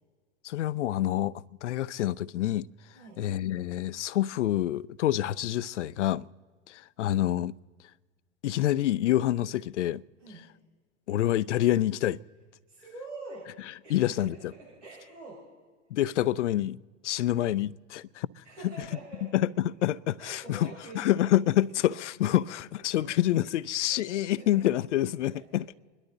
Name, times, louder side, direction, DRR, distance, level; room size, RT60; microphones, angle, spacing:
voice 1, 0.4-2.7 3.2-6.3 6.7-7.5 8.4-10.0 11.1-12.2 13.9-14.3 15.9-16.8 17.0-18.7 19.3-20.7 20.9-25.7, left 13 dB, 80° left, 0.5 m, -27 dB
voice 2, 2.9-3.2 10.2-10.5 12.7-13.5 13.8-15.5 18.4-19.3 20.2-21.3 22.3-22.4 22.9-23.1 23.9-24.5 25.3-25.8, right 3 dB, 90° right, 5.1 m, -46 dB
26.5 x 11.5 x 4.0 m
hypercardioid pair, 95°, 35 cm